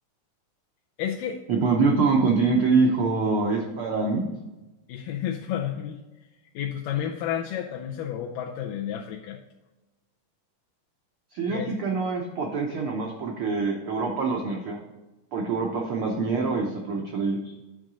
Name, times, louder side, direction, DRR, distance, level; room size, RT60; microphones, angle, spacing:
voice 1, 1.0-1.4 4.9-6.0 6.6-9.4 11.5-11.7, left 9 dB, 85° left, -1 dB, 2.3 m, -31 dB
voice 2, 1.5-4.3 11.3-14.8 15.3-17.5, right 4 dB, 90° right, 1 dB, 1.1 m, -25 dB
10.5 x 3.8 x 6.1 m, 1.1 s
omnidirectional pair, 3.8 m